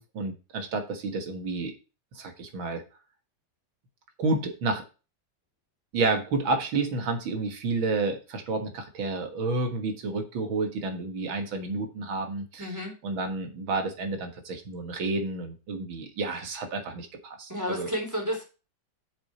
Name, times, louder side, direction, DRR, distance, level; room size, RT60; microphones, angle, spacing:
voice 1, 0.0-1.7 2.1-2.8 4.2-4.8 5.9-12.7 13.0-17.9, right 3 dB, 80° right, 5 dB, 2.4 m, -30 dB
voice 2, 12.6-12.9 17.5-18.4, equal, 10° right, 1 dB, 3.1 m, -31 dB
7.3 x 7.1 x 4.3 m, 0.31 s
omnidirectional pair, 2.2 m